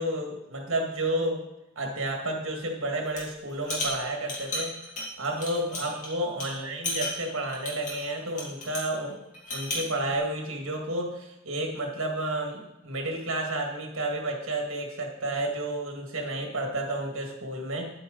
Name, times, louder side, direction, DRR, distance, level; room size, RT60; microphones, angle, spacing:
voice 1, 0.0-1.4 1.8-4.8 5.2-9.2 9.5-17.9, right 1 dB, 65° right, 2 dB, 2.0 m, -31 dB
sound 1, 3.0-3.3 3.6-6.1 6.4-6.5 6.8-8.9 9.3-9.9, left 2 dB, 35° left, 2.7 m, -34 dB
9.9 x 8.8 x 4.0 m, 0.94 s
head